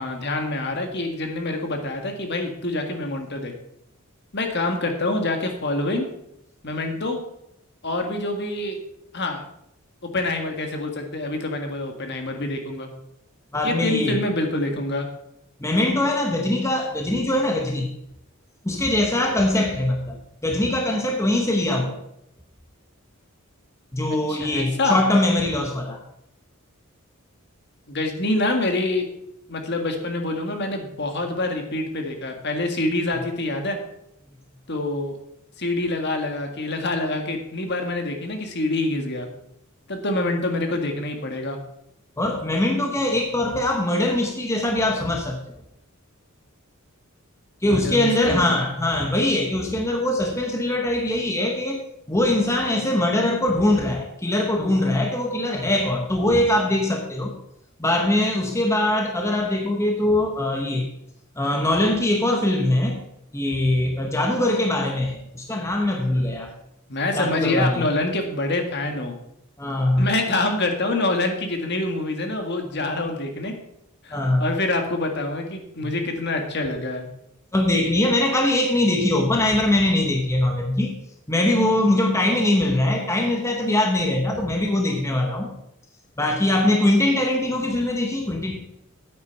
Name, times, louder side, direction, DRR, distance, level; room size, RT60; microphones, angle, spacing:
voice 1, 0.0-3.5 4.3-6.1 6.6-7.2 7.8-8.8 9.1-9.4 10.1-12.9 13.6-15.1 24.3-25.0 27.9-29.1 29.5-33.8 34.7-35.2 35.6-39.3 39.9-41.6 47.6-48.6 66.9-69.2 70.0-73.5 74.0-77.1, left 2 dB, 50° left, 4 dB, 1.7 m, -26 dB
voice 2, 13.5-14.2 15.6-17.9 18.6-22.0 23.9-26.0 42.2-45.4 47.6-51.8 52.1-57.3 57.8-60.9 61.4-63.0 63.3-66.5 67.1-67.8 69.6-70.0 74.1-74.5 75.8-75.9 77.5-80.9 81.3-85.5 86.2-88.6, left 1 dB, 15° left, 2 dB, 1.0 m, -22 dB
9.2 x 8.6 x 5.4 m, 0.78 s
head